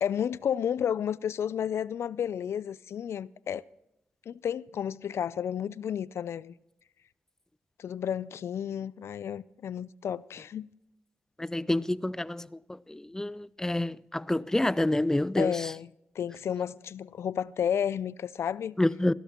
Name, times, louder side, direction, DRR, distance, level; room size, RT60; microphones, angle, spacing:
voice 1, 0.0-3.6 4.3-6.5 7.8-10.7 15.4-15.9 16.2-18.8, left 8 dB, 75° left, 0.4 m, -32 dB
voice 2, 11.4-15.5 18.8-19.1, left 1 dB, 10° left, 0.4 m, -28 dB
15.5 x 13.0 x 2.9 m
cardioid pair, 65°, 5 cm